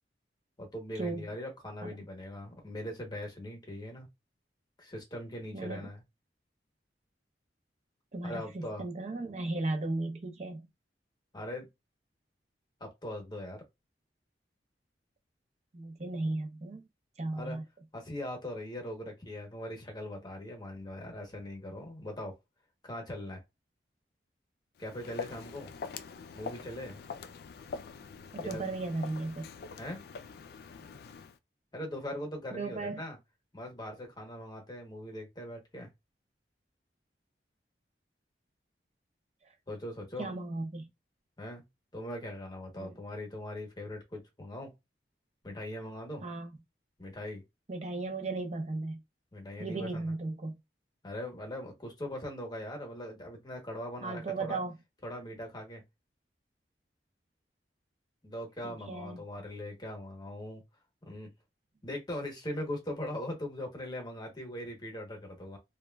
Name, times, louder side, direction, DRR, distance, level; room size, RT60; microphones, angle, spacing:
voice 1, 0.6-4.1 4.8-6.0 8.2-8.9 11.3-11.7 12.8-13.6 17.3-17.6 17.9-22.4 22.8-23.4 24.8-25.7 26.3-27.1 28.4-28.8 29.8-30.0 31.7-33.2 33.5-35.9 39.7-40.3 41.4-41.6 41.9-44.7 45.4-46.3 47.0-47.4 49.3-50.1 51.0-54.6 55.0-55.8 58.2-60.6 61.0-61.3 61.8-65.6, left 1 dB, 25° left, 0.9 m, -40 dB
voice 2, 5.5-5.9 8.1-10.7 15.7-16.8 17.2-17.6 28.3-29.5 32.5-33.0 39.4-39.5 40.2-40.9 42.8-43.0 46.2-46.5 47.7-49.0 49.6-50.6 54.0-54.7 58.6-59.2, right 2 dB, 40° right, 0.6 m, -36 dB
Walk footsteps, 24.8-31.4, left 5 dB, 60° left, 0.3 m, -44 dB
3.0 x 2.2 x 2.2 m
head